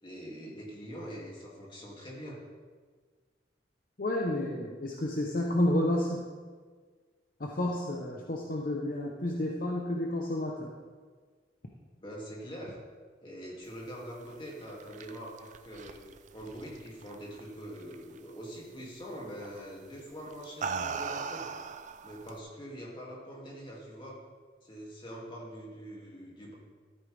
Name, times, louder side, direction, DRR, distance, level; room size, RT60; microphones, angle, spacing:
voice 1, 0.0-2.4 12.0-12.8 13.2-16.0 16.3-21.5 22.0-24.2 24.6-26.5, equal, 25° left, -4 dB, 2.5 m, -44 dB
voice 2, 4.0-6.2 7.4-10.7, left 1 dB, 50° left, -1 dB, 0.9 m, -30 dB
sound 1, 14.5-17.4 17.8-18.2 19.4-19.6 20.3-22.4, right 5 dB, 40° right, 0.4 m, -38 dB
13.5 x 8.8 x 3.5 m, 1.5 s
head